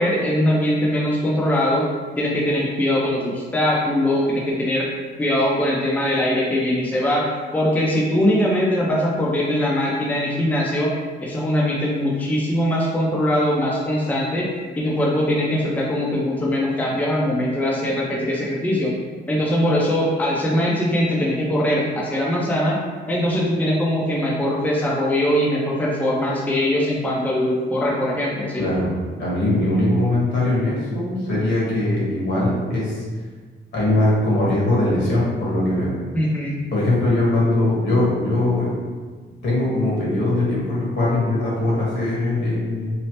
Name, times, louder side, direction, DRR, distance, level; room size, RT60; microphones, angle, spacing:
voice 1, 0.0-1.9 2.2-4.9 5.2-7.2 7.5-10.9 11.2-14.5 14.8-18.9 19.3-22.8 23.1-28.6 36.1-36.6, left 1 dB, 10° left, -4 dB, 0.5 m, -21 dB
voice 2, 28.6-28.9 29.2-33.0 33.7-35.9 36.7-38.7 39.4-42.9, left 1 dB, 65° left, -6 dB, 1.3 m, -21 dB
3.1 x 2.0 x 2.9 m, 1.5 s
cardioid pair, 90°, 20 cm